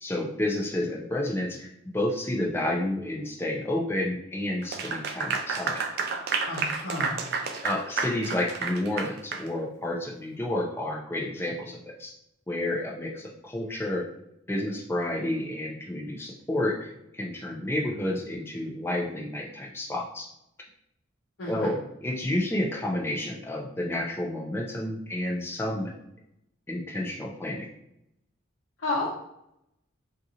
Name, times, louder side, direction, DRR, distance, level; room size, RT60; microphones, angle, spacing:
voice 1, 0.0-1.7 1.9-5.8 7.6-12.1 12.5-14.1 14.5-20.3 21.5-21.7 22.0-25.9 26.7-27.7, left 1 dB, 10° left, -1 dB, 0.4 m, -30 dB
Clapping / Applause, 4.6-9.5, right 4 dB, 50° right, 0.3 m, -30 dB
voice 2, 6.5-7.2 21.4-21.7 28.8-29.1, left 2 dB, 70° left, -5 dB, 0.7 m, -31 dB
2.8 x 2.5 x 3.7 m, 0.80 s
head